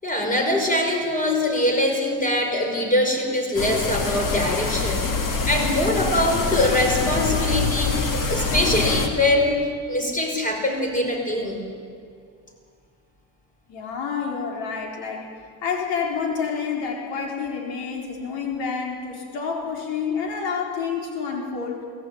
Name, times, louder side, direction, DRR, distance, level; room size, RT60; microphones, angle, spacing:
voice 1, 0.0-5.1 5.5-9.6 9.9-11.6, left 1 dB, 20° left, 2 dB, 5.6 m, -23 dB
sound 1, 3.6-9.1, left 3 dB, 45° left, 3.0 m, -25 dB
voice 2, 13.7-15.3 15.6-21.9, left 6 dB, 85° left, 1 dB, 4.5 m, -28 dB
23.0 x 19.5 x 9.0 m, 2.2 s
cardioid pair, 115°, 44 cm